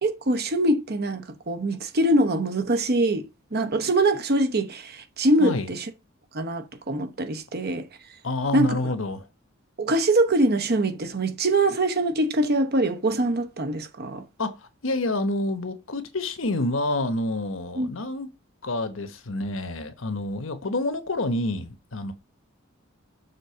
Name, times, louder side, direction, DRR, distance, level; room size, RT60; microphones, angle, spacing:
voice 1, 0.0-5.9 6.3-7.9 8.5-8.8 9.8-14.2 17.8-17.9, right 1 dB, 50° right, 1.0 m, -23 dB
voice 2, 8.2-9.2 14.4-14.5 14.8-18.3 18.6-22.1, left 2 dB, 70° left, 1.1 m, -28 dB
6.8 x 3.8 x 5.6 m
head